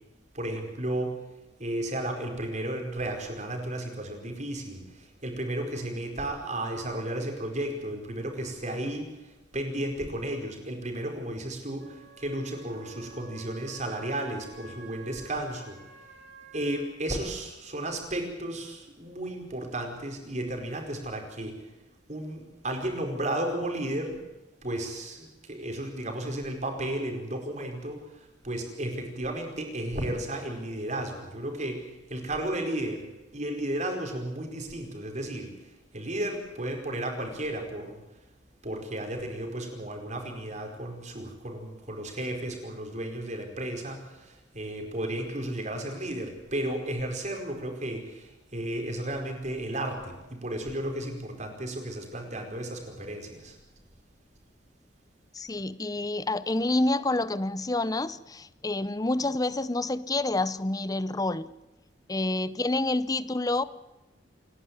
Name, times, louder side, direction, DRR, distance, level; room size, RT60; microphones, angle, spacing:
voice 1, 0.3-1.2 1.6-15.8 16.5-21.7 22.1-24.2 24.6-33.1 33.3-35.5 35.9-38.0 38.6-53.6, right 1 dB, 40° right, 3 dB, 4.8 m, -33 dB
Wind instrument woodwind instrument, 11.8-16.9, right 4 dB, 75° right, 6.8 m, -51 dB
voice 2, 55.3-61.5 62.1-63.6, left 2 dB, 20° left, 15 dB, 0.7 m, -28 dB
28.5 x 11.5 x 9.5 m, 1.1 s
head